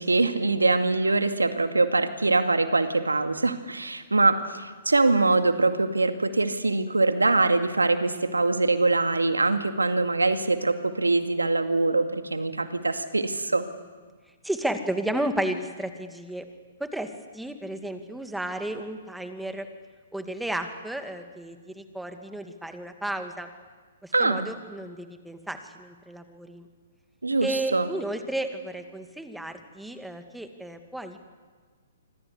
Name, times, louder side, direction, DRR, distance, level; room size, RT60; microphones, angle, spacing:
voice 1, 0.0-13.6 24.1-24.5 27.2-27.9, right 3 dB, 85° right, 7 dB, 2.2 m, -23 dB
voice 2, 14.4-16.5 16.8-19.7 20.1-23.5 24.0-26.7 27.4-31.2, right 1 dB, 5° right, 7 dB, 2.3 m, -33 dB
26.5 x 25.5 x 8.3 m, 1.5 s
figure-of-eight pair, 120°, 0 cm